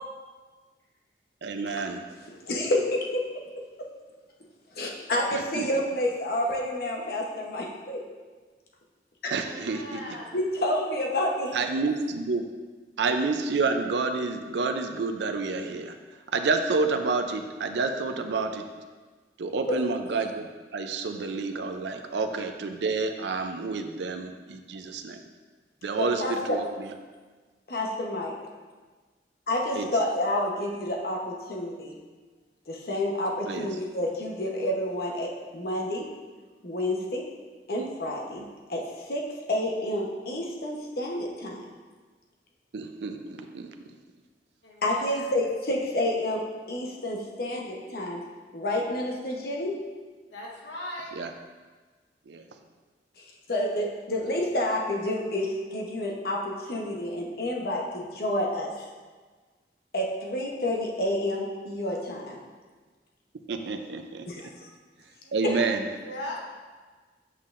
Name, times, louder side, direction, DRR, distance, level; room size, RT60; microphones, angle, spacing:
voice 1, 1.4-2.0 5.6-5.7 9.3-10.0 11.5-12.4 13.0-15.9 16.3-18.6 19.4-20.4 20.7-25.2 25.8-26.6 29.7-29.9 33.5-33.7 42.7-43.7 51.2-51.3 52.3-52.4 63.5-64.2 65.3-65.8, right 4 dB, 75° right, 6 dB, 0.4 m, -29 dB
voice 2, 2.3-3.4 3.8-3.9 4.8-8.0 9.2-9.3 10.3-11.5 19.7-19.8 26.0-26.6 27.7-28.4 29.5-32.0 32.7-36.1 36.6-37.3 37.7-41.6 44.8-48.2 48.5-49.8 53.5-58.8 59.9-62.4 64.3-64.7 65.4-65.5, left 1 dB, 55° left, -1 dB, 1.0 m, -29 dB
voice 3, 9.4-10.3 44.6-45.3 50.3-51.1 65.2-65.7 66.0-66.4, left 1 dB, 85° left, -3 dB, 1.2 m, -39 dB
8.1 x 5.6 x 2.5 m, 1.4 s
head